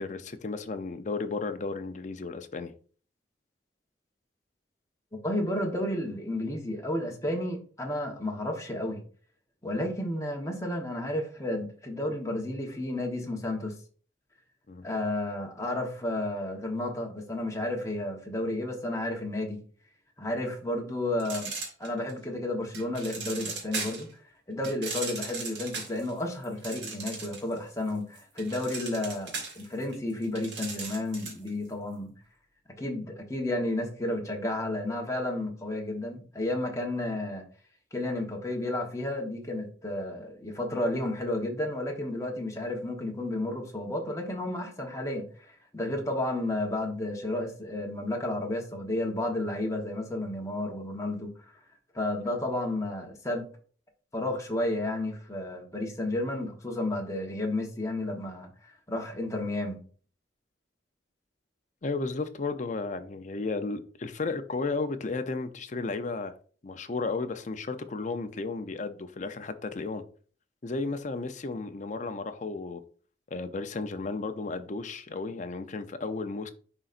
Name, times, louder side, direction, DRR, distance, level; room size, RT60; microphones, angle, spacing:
voice 1, 0.0-2.7 14.7-14.8 52.3-52.4 61.8-66.3 66.6-70.0 70.6-72.8 73.3-76.5, left 3 dB, 45° left, 0.6 m, -34 dB
voice 2, 5.2-9.0 9.6-13.7 14.8-19.6 20.2-21.5 21.8-24.1 24.5-32.1 32.8-37.4 37.9-45.3 45.7-51.3 51.9-53.5 54.1-58.5 58.9-59.8, left 1 dB, 20° left, 1.1 m, -32 dB
sound 1, 21.2-22.2 22.7-24.1 24.6-27.6 27.9-31.5, right 4 dB, 80° right, 1.8 m, -37 dB
9.9 x 3.9 x 2.5 m
head